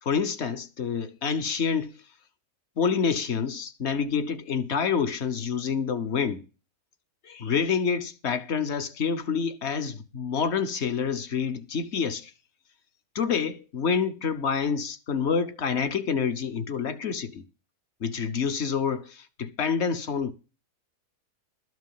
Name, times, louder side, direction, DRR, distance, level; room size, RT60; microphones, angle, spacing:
voice 1, 0.0-1.9 2.8-6.5 7.2-12.3 13.1-17.4 18.0-20.3, left 6 dB, 55° left, 0.9 m, -27 dB
12.5 x 6.1 x 7.4 m
omnidirectional pair, 1.7 m